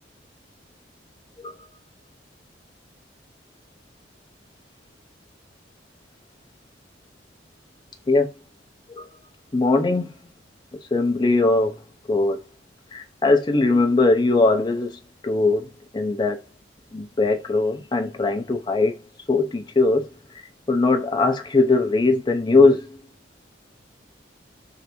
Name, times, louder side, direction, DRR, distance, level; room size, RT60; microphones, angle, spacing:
voice 1, 9.5-10.1 10.9-11.8 12.1-12.4 12.9-16.5 16.9-19.0 19.3-20.1 20.7-23.0, left 3 dB, 25° left, 0.4 m, -20 dB
3.2 x 2.5 x 2.9 m
head